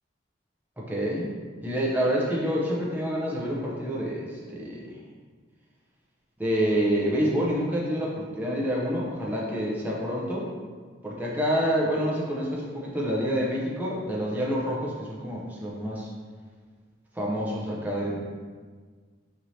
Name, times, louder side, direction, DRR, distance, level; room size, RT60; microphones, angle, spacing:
voice 1, 0.8-1.3 1.6-4.8 6.4-10.5 11.0-16.1 17.1-18.2, equal, 10° right, -4 dB, 0.6 m, -27 dB
4.4 x 3.1 x 2.7 m, 1.5 s
head